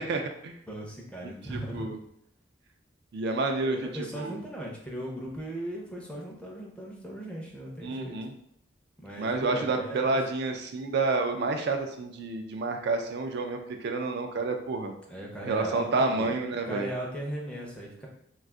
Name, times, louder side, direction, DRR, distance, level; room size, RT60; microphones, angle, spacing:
voice 1, 0.0-0.6 1.5-2.0 3.1-3.8 4.1-4.4 7.8-8.3 9.2-15.0 15.5-16.9, right 3 dB, 60° right, 4 dB, 0.4 m, -29 dB
voice 2, 0.7-1.9 3.3-8.2 9.0-10.2 15.1-16.4 16.6-18.1, right 1 dB, 5° left, -2 dB, 0.6 m, -38 dB
2.4 x 2.3 x 3.6 m, 0.71 s
head